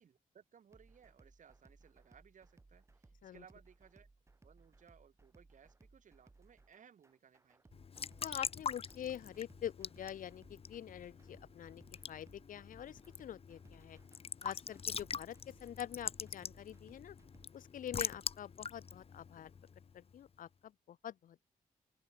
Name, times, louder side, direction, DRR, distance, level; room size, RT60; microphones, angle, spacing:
voice 1, 0.0-4.1 4.4-7.7, right 8 dB, 60° right, 2.1 m, -63 dB
sound 1, 0.7-17.5, right 3 dB, 20° right, 1.6 m, -65 dB
Raindrop / Drip / Trickle dribble, 7.7-20.2, left 6 dB, 40° left, 1.0 m, -45 dB
voice 2, 8.2-14.0 14.4-17.2 17.5-19.5 19.9-21.4, left 10 dB, 70° left, 0.5 m, -46 dB
open air
wide cardioid pair, 130°, 15 cm